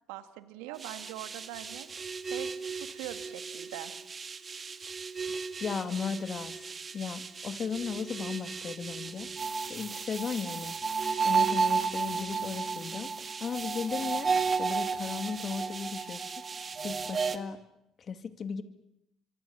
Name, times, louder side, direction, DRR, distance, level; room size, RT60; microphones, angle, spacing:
voice 1, 0.1-1.9 2.2-3.9, right 14 dB, 80° right, 10 dB, 1.8 m, -42 dB
sound 1, 0.8-17.4, right 5 dB, 35° right, 1.9 m, -33 dB
voice 2, 5.6-9.3 9.7-10.7 11.2-16.3 16.8-17.6 18.0-18.6, left 6 dB, 45° left, 9 dB, 2.4 m, -36 dB
25.0 x 25.0 x 7.4 m, 0.83 s
hypercardioid pair, 65°, 0 cm